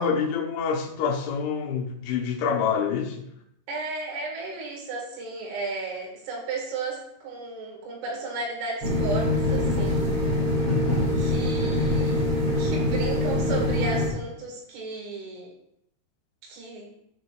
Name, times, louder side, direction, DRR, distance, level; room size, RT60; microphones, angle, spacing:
voice 1, 0.0-3.3 10.7-11.1, left 6 dB, 75° left, 3.1 m, -27 dB
voice 2, 3.7-10.0 11.2-12.2 12.6-15.5 16.4-16.9, right 3 dB, 80° right, 4.3 m, -34 dB
sound 1, 8.8-14.1, left 1 dB, 50° right, 1.5 m, -24 dB
17.0 x 6.3 x 2.4 m
omnidirectional pair, 5.7 m